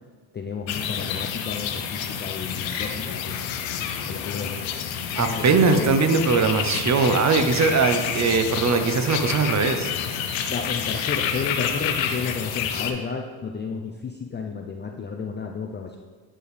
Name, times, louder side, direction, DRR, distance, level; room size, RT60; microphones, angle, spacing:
voice 1, 0.3-3.5 4.1-4.7 5.2-5.9 10.5-16.0, left 5 dB, 25° left, 2 dB, 0.4 m, -32 dB
sound 1, 0.7-12.9, left 8 dB, 75° left, 0.7 m, -29 dB
voice 2, 5.2-9.9, right 4 dB, 35° right, 8 dB, 0.7 m, -20 dB
8.7 x 4.5 x 3.3 m, 1.5 s
supercardioid pair, 80°, 46 cm